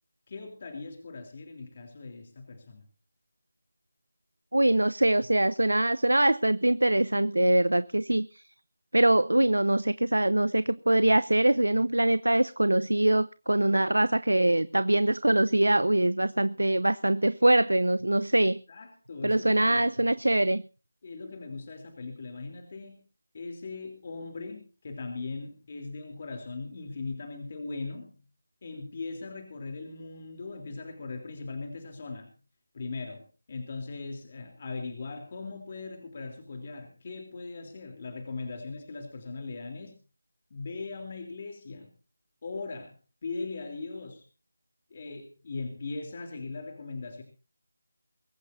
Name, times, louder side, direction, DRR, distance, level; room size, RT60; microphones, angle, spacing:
voice 1, 0.3-2.8 18.7-19.9 21.0-23.0 23.3-28.2 28.6-32.4 32.7-40.0 40.5-41.9 42.4-42.9 43.2-44.2 44.9-47.2, left 3 dB, 40° left, 3.3 m, -39 dB
voice 2, 4.5-8.4 8.9-18.6 19.2-20.6, right 1 dB, 85° right, 0.7 m, -23 dB
23.5 x 15.0 x 2.7 m
figure-of-eight pair, 160°, 0 cm